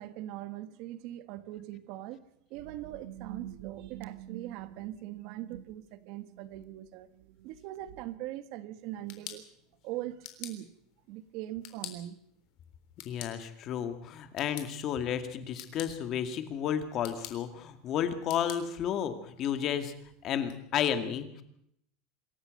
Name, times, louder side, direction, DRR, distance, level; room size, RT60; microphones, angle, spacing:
voice 1, 0.0-2.2 2.5-7.1 7.4-9.5 9.8-10.7 11.1-12.2, right 14 dB, 50° right, 1.5 m, -41 dB
sound 1, 2.5-8.2, right 13 dB, 80° right, 1.6 m, -48 dB
sound 2, 8.8-20.6, left 12 dB, 50° left, 3.6 m, -50 dB
voice 2, 13.1-19.9 20.2-21.4, left 9 dB, 35° left, 2.1 m, -32 dB
26.5 x 14.0 x 7.8 m
supercardioid pair, 170°, 0 cm